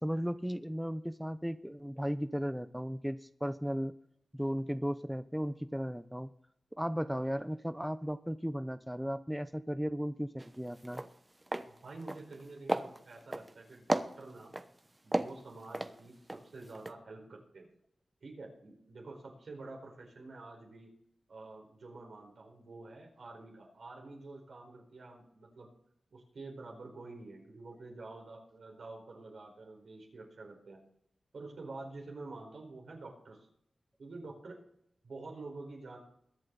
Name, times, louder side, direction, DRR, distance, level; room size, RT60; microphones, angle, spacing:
voice 1, 0.0-3.9 4.3-6.3 6.8-11.0, equal, 5° right, 11 dB, 0.7 m, -35 dB
sound 1, 10.4-10.5 10.8-11.1 11.5-11.7 12.0-12.4 12.7-13.5 13.9-14.7 15.1-16.4 16.7-16.9, right 1 dB, 25° right, 1.0 m, -33 dB
voice 2, 11.6-14.5 15.0-17.7 18.2-20.9 21.3-25.7 26.1-30.8 31.3-33.5 34.0-34.6 35.0-36.0, right 3 dB, 75° right, 1 dB, 4.5 m, -48 dB
22.0 x 7.7 x 4.0 m, 0.71 s
cardioid pair, 45°, 0 cm